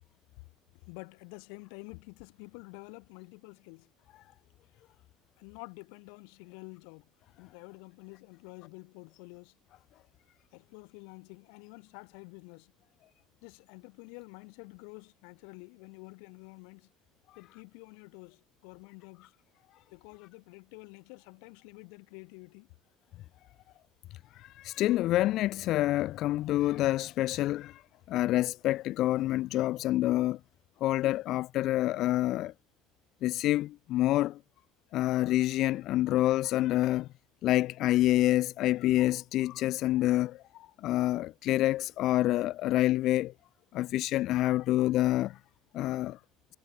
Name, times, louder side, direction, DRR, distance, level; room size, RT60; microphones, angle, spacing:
voice 1, 0.9-3.9 5.4-7.1 7.4-9.5 10.5-12.7 13.4-16.9 17.4-19.3 19.9-22.7, left 40 dB or more, 85° left, 5.3 m, -49 dB
voice 2, 24.3-27.8 28.1-30.4 30.8-32.5 33.2-34.4 34.9-37.1 37.4-43.3 43.7-45.4 45.7-46.2, left 15 dB, 50° left, 1.6 m, -27 dB
cardioid pair, 165°, 0 cm